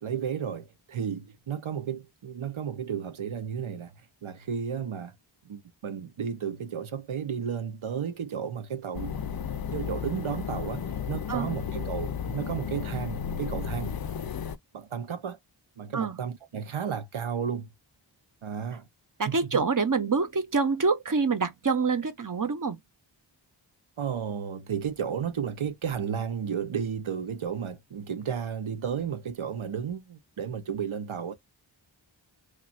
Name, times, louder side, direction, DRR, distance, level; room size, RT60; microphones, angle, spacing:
voice 1, 0.0-3.9 4.2-5.1 5.4-9.2 9.7-14.0 14.7-15.4 15.8-17.7 18.4-18.8 19.3-19.6 24.0-31.3, right 7 dB, 80° right, 0.8 m, -33 dB
sound 1, 8.9-14.6, left 7 dB, 50° left, 0.5 m, -33 dB
voice 2, 19.2-22.8, right 4 dB, 40° right, 0.8 m, -26 dB
3.1 x 2.4 x 2.4 m
wide cardioid pair, 50°, 48 cm